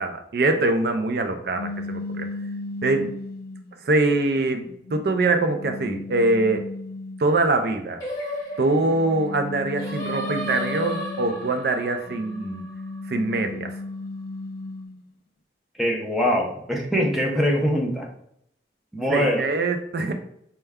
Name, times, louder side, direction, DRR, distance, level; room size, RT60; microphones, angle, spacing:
voice 1, 0.0-2.3 2.8-3.1 3.8-6.6 7.2-8.0 8.6-12.6 13.1-13.8 19.1-20.1, right 2 dB, 55° right, 7 dB, 0.4 m, -23 dB
sound 1, 1.5-3.7 4.4-7.5 8.6-11.6 12.0-15.0, left 2 dB, 55° left, 0.3 m, -35 dB
Singing, 8.0-13.3, equal, 20° left, 1.0 m, -34 dB
voice 2, 15.8-18.1 18.9-19.4, equal, ahead, -1 dB, 0.5 m, -23 dB
4.3 x 2.2 x 3.4 m, 0.72 s
head